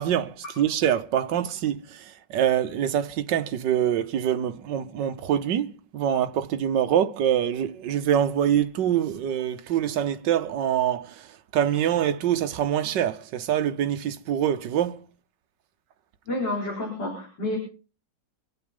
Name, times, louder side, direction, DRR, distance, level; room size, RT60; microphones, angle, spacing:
voice 1, 0.0-11.3 11.5-15.0, right 10 dB, 80° right, 1.6 m, -25 dB
voice 2, 16.3-17.6, left 1 dB, 80° left, 5.2 m, -29 dB
25.0 x 8.3 x 5.3 m
omnidirectional pair, 1.9 m